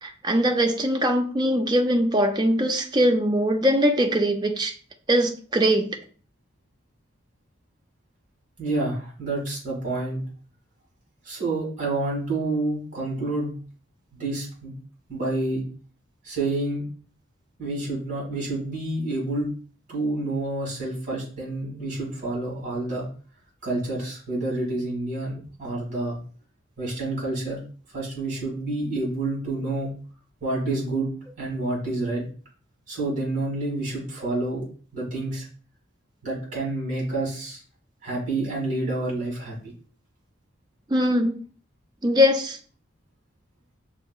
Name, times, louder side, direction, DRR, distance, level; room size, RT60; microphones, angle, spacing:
voice 1, 0.0-4.7 5.1-5.9 40.9-41.4 42.0-42.6, equal, 20° right, 4 dB, 0.5 m, -21 dB
voice 2, 8.6-10.2 11.2-13.5 14.1-14.7 15.1-15.6 16.2-16.8 17.6-19.5 19.9-23.0 23.6-26.2 26.8-27.6 27.9-29.9 30.4-31.1 31.4-32.2 32.9-34.6 34.9-35.5 36.2-37.6 38.0-39.6, right 2 dB, 40° right, -3 dB, 2.2 m, -28 dB
6.3 x 2.8 x 2.3 m, 0.40 s
head